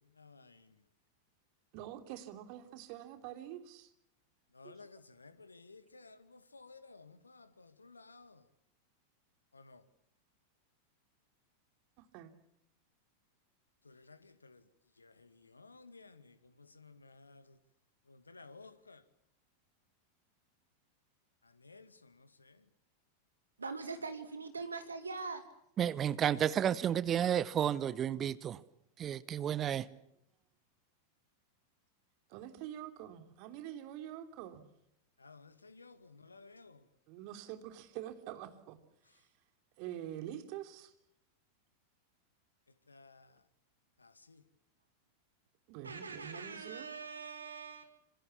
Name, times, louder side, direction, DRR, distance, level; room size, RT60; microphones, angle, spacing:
voice 1, 0.2-0.6 4.5-8.4 9.5-9.8 13.9-14.6 15.0-17.4 18.1-19.0 21.6-22.5 35.2-36.8 42.9-43.3 44.0-44.4, left 3 dB, 80° left, 2.1 m, -56 dB
voice 2, 1.7-3.9 12.0-12.3 32.3-34.6 37.1-38.8 39.2-39.3 39.8-40.9 45.7-46.9, right 12 dB, 45° right, 3.1 m, -46 dB
voice 3, 23.6-25.4 45.8-48.0, right 4 dB, 75° right, 2.2 m, -42 dB
voice 4, 25.8-28.6 29.0-29.9, right 9 dB, 25° right, 1.0 m, -31 dB
27.0 x 26.5 x 7.2 m
figure-of-eight pair, 90°, 0 cm